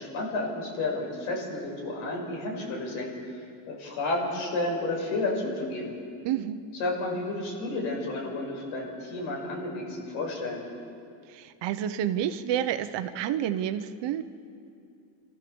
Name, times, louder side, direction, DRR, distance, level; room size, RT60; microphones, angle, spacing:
voice 1, 0.0-5.9 6.8-10.6, left 2 dB, 75° left, -1 dB, 6.5 m, -31 dB
voice 2, 6.2-6.7 11.3-14.2, right 10 dB, 60° right, 9 dB, 1.2 m, -29 dB
28.5 x 14.5 x 7.2 m, 2.4 s
cardioid pair, 125°, 48 cm